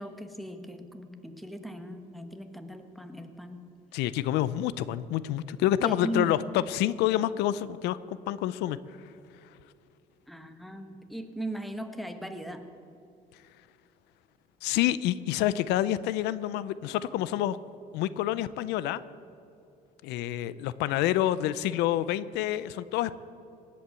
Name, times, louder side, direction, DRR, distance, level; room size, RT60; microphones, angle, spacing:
voice 1, 0.0-3.6 5.8-6.4 10.3-12.6, right 1 dB, ahead, 8 dB, 1.3 m, -38 dB
voice 2, 3.9-9.1 14.6-17.6 17.9-19.0 20.0-23.1, left 13 dB, 90° left, 17 dB, 0.5 m, -28 dB
18.0 x 8.5 x 8.2 m, 2.6 s
cardioid pair, 110°, 17 cm